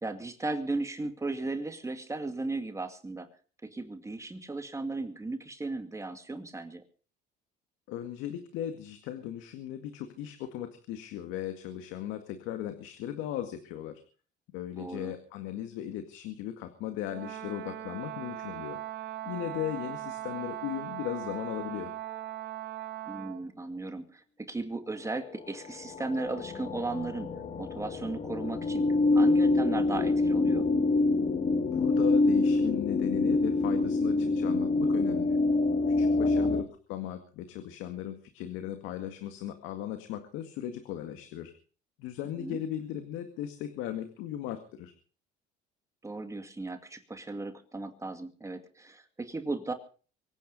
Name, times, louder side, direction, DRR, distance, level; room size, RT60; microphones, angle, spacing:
voice 1, 0.0-3.3 3.6-6.8 14.8-15.1 23.1-27.3 27.6-28.8 29.1-30.7 36.2-36.5 42.4-42.6 46.0-49.7, right 2 dB, 15° right, 6 dB, 2.3 m, -36 dB
voice 2, 7.9-14.0 14.5-18.8 19.3-21.9 31.6-35.4 36.0-41.5 42.0-44.9, left 11 dB, 75° left, 7 dB, 2.0 m, -37 dB
Brass instrument, 17.1-23.5, right 13 dB, 55° right, 5.6 m, -39 dB
sound 1, 25.2-36.6, left 3 dB, 35° left, 2.3 m, -26 dB
24.0 x 9.4 x 5.4 m, 0.40 s
supercardioid pair, 100°, 20 cm